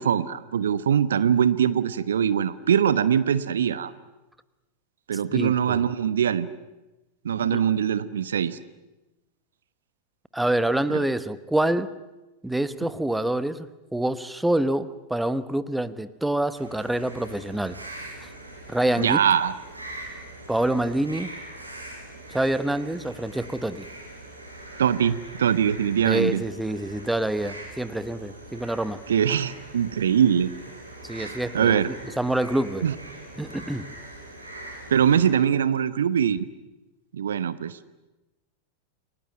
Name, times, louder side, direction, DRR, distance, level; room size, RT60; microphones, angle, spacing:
voice 1, 0.0-3.9 5.1-6.5 7.2-8.6 19.0-19.5 24.8-26.4 29.1-30.5 31.2-31.9 32.8-32.9 34.9-36.5 37.1-37.7, right 8 dB, 65° right, 15 dB, 1.0 m, -22 dB
voice 2, 5.3-5.8 7.5-7.6 10.3-11.9 12.4-17.8 18.2-18.3 18.7-19.2 20.5-21.4 22.3-23.9 26.0-29.0 31.0-32.9 33.4-33.9, right 1 dB, 5° right, 14 dB, 1.1 m, -26 dB
sound 1, 16.5-35.3, right 1 dB, 85° right, 7.4 m, -42 dB
29.5 x 18.5 x 9.1 m, 1.1 s
figure-of-eight pair, 90°, 0 cm